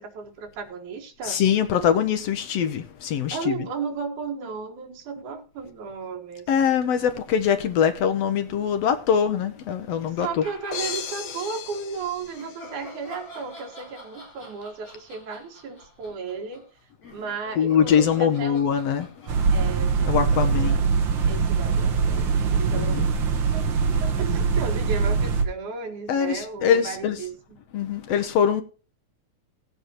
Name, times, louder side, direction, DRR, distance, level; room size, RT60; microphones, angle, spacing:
voice 1, 0.0-1.4 3.3-6.5 10.2-16.7 17.1-18.6 19.5-20.9 21.3-23.1 23.5-23.6 24.0-27.6, right 5 dB, 80° right, 3.2 m, -34 dB
voice 2, 1.2-3.6 6.5-10.4 17.6-19.1 20.1-20.8 22.7-23.1 26.1-27.3 27.7-28.6, left 8 dB, 70° left, 1.8 m, -23 dB
sound 1, 10.2-11.8 12.3-20.6, left 1 dB, 40° left, 5.6 m, -46 dB
sound 2, 10.7-13.0, left 8 dB, 85° left, 2.7 m, -36 dB
sound 3, 19.3-25.4, right 5 dB, 55° right, 1.5 m, -22 dB
18.5 x 8.1 x 3.0 m
omnidirectional pair, 3.4 m